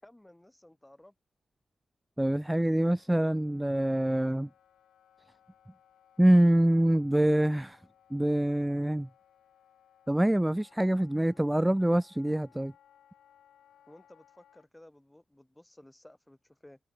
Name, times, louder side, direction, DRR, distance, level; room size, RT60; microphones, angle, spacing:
voice 1, 0.0-1.1 13.9-16.8, left 1 dB, 15° left, 7.9 m, -56 dB
voice 2, 2.2-4.5 6.2-7.8 8.1-9.1 10.1-12.7, right 1 dB, 10° right, 0.6 m, -25 dB
Wind instrument woodwind instrument, 2.6-14.7, left 10 dB, 85° left, 3.2 m, -64 dB
supercardioid pair, 40°, 0 cm